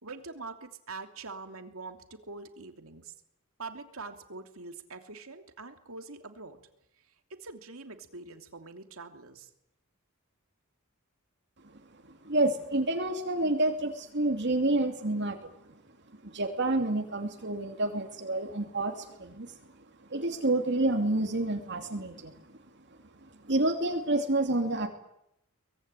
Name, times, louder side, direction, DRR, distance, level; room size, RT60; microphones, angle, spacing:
voice 1, 0.0-3.1 3.6-6.6 7.4-9.5, right 3 dB, 70° right, 6 dB, 3.0 m, -44 dB
voice 2, 12.2-15.5 16.2-19.6 20.1-22.4 23.4-24.9, right 2 dB, 55° right, 3 dB, 2.8 m, -28 dB
23.5 x 22.5 x 9.1 m, 0.79 s
head